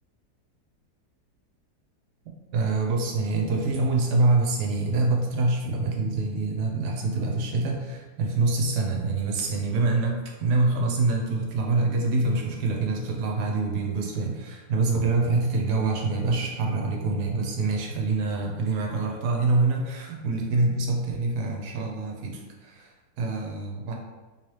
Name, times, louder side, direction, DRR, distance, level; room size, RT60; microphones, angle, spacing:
voice 1, 2.5-23.9, right 3 dB, 85° right, 0 dB, 1.2 m, -25 dB
3.2 x 3.0 x 3.0 m, 1.2 s
omnidirectional pair, 1.7 m